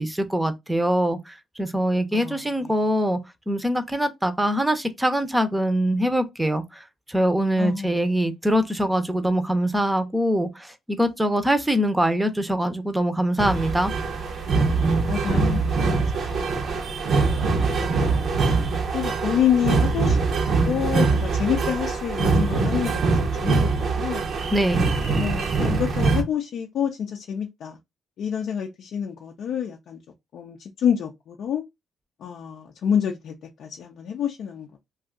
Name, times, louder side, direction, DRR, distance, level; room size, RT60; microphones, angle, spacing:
voice 1, 0.0-3.2 3.5-13.9 24.5-24.9, equal, 10° right, 0.6 m, -23 dB
voice 2, 2.1-2.7 7.6-8.2 15.1-16.8 17.1-18.5 18.9-20.2 20.7-24.3 25.1-27.8 28.2-30.0 30.3-31.6 32.2-33.3 33.6-34.8, left 8 dB, 70° left, 0.5 m, -28 dB
sound 1, 13.4-26.2, right 4 dB, 65° right, 0.7 m, -23 dB
2.6 x 2.3 x 3.6 m
cardioid pair, 90°, 0 cm